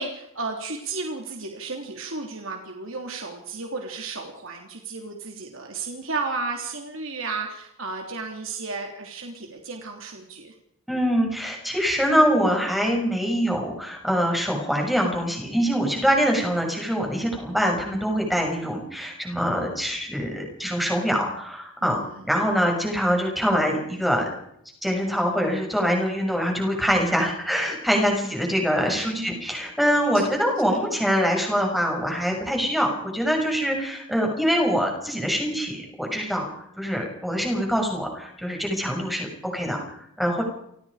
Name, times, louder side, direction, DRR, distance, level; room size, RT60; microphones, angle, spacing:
voice 1, 0.0-10.5 21.8-22.4 28.9-29.5 30.1-30.4 34.1-34.2, right 3 dB, 65° right, 2 dB, 3.3 m, -33 dB
voice 2, 10.9-24.3 24.8-36.5 36.8-40.4, equal, ahead, 1 dB, 6.8 m, -24 dB
29.5 x 19.5 x 5.1 m, 0.75 s
head